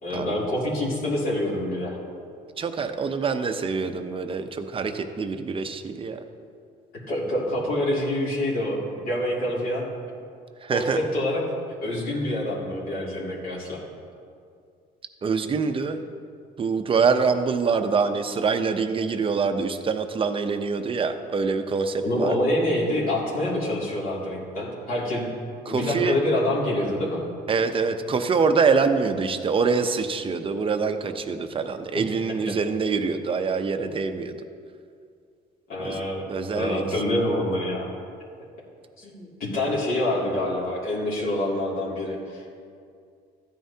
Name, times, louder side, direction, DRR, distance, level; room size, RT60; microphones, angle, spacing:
voice 1, 0.0-2.0 7.1-9.9 10.7-11.4 11.8-13.8 22.0-25.3 25.7-27.2 35.7-36.2 36.5-37.9 39.0-42.6, left 1 dB, 60° left, -6 dB, 2.6 m, -26 dB
voice 2, 2.6-6.2 10.6-11.0 15.2-16.0 16.6-22.4 25.7-26.2 27.5-34.3 35.8-36.0 36.3-36.9, right 5 dB, 30° right, 8 dB, 0.7 m, -25 dB
14.5 x 9.3 x 2.8 m, 2.3 s
cardioid pair, 110°, 17 cm